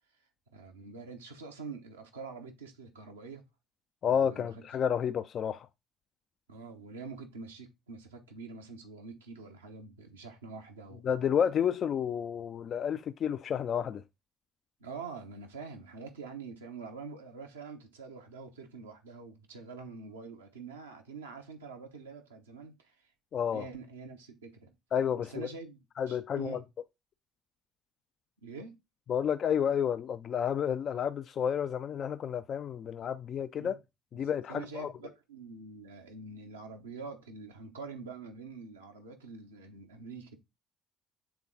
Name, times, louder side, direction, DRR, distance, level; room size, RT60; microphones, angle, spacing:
voice 1, 0.5-3.4 4.0-4.5 6.5-11.0 14.8-22.9 23.5-24.7 25.2-25.8 26.1-26.6 28.4-28.8 33.6-33.8 34.5-40.4, right 4 dB, 80° right, 0.9 m, -45 dB
voice 2, 4.0-5.7 11.0-14.0 23.3-23.6 24.9-25.5 26.0-26.6 29.1-33.8 34.1-34.9, left 8 dB, 50° left, 0.3 m, -30 dB
7.1 x 3.7 x 3.8 m
figure-of-eight pair, 50°, 0 cm